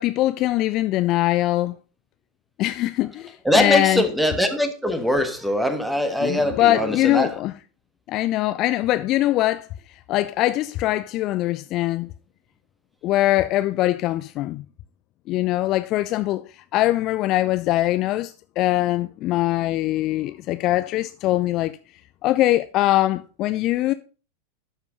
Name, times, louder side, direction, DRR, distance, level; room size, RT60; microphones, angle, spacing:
voice 1, 0.0-1.8 2.6-4.1 6.2-7.5 8.1-9.7 10.1-12.1 13.0-14.6 15.3-16.4 16.7-21.8 22.2-23.9, left 15 dB, 35° left, 0.4 m, -22 dB
voice 2, 3.4-7.3, equal, 5° right, 1.4 m, -22 dB
12.0 x 4.7 x 5.0 m
figure-of-eight pair, 90°, 0 cm